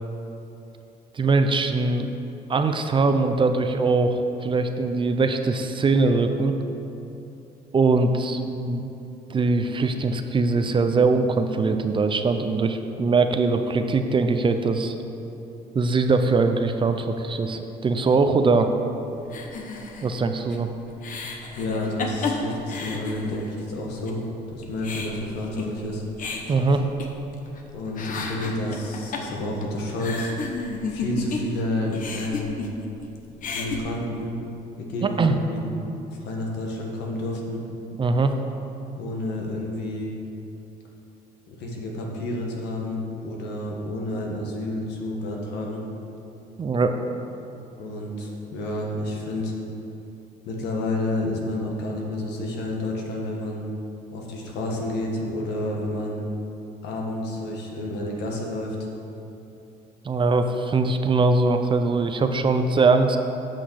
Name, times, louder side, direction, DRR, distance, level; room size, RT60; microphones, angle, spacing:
voice 1, 1.1-2.1 2.5-6.5 7.7-8.9 9.3-14.9 15.7-18.7 20.0-20.7 26.5-26.9 35.0-35.4 38.0-38.3 46.6-47.0 60.0-63.2, right 3 dB, 30° right, 7 dB, 0.6 m, -21 dB
sound 1, 19.3-23.7 24.1-24.2 24.5-27.6 27.9-31.6 31.9-33.1 33.3-33.8, left 4 dB, 50° left, 1.1 m, -32 dB
voice 2, 21.5-24.2 24.5-26.0 27.7-30.3 30.9-32.6 33.5-34.3 34.8-35.6 36.2-37.6 39.0-40.1 41.5-45.8 47.8-49.5 50.4-53.6 54.1-56.2 56.8-58.7, left 1 dB, 85° left, -1 dB, 1.7 m, -30 dB
8.5 x 5.9 x 6.4 m, 2.9 s
cardioid pair, 110°, 17 cm